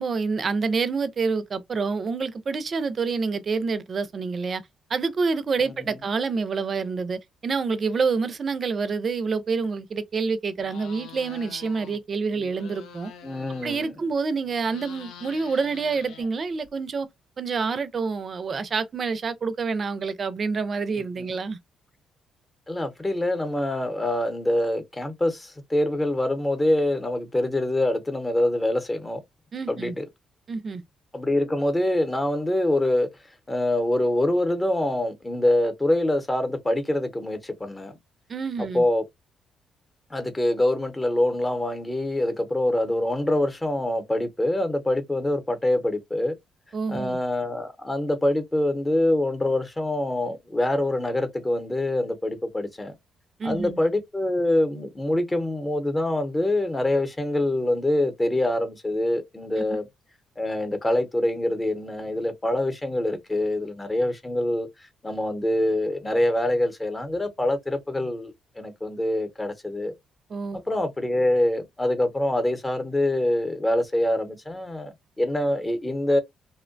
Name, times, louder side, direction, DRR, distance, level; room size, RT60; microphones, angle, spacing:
voice 1, 0.0-4.6 4.9-13.1 13.6-17.1 17.4-21.6 29.5-29.9 30.5-30.8 38.3-38.8 46.7-47.2 53.4-53.8 70.3-70.6, right 4 dB, 45° right, 0.5 m, -27 dB
voice 2, 5.6-6.0 13.2-14.0 21.0-21.2 22.7-29.2 29.7-30.1 31.1-33.1 33.5-38.0 38.6-39.0 40.1-46.4 46.9-52.9 53.4-59.9 60.4-64.7 65.0-69.9 70.5-76.2, left 1 dB, 15° left, 0.8 m, -25 dB
sound 1, 10.6-12.0 12.3-14.1 14.4-16.7, left 7 dB, 85° left, 0.6 m, -45 dB
2.7 x 2.1 x 2.5 m
cardioid pair, 90°, 0 cm